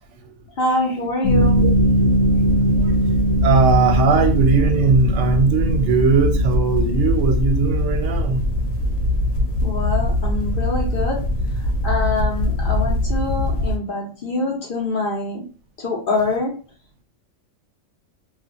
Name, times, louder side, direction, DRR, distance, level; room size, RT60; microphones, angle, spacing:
voice 1, 0.6-1.6 9.6-11.2 11.8-15.4 15.8-16.5, left 2 dB, 50° left, 0.8 m, -24 dB
sound 1, 1.2-13.8, equal, 90° left, 1.0 m, -20 dB
voice 2, 3.4-8.4, right 5 dB, 70° right, 0.9 m, -19 dB
2.5 x 2.4 x 2.4 m
omnidirectional pair, 1.3 m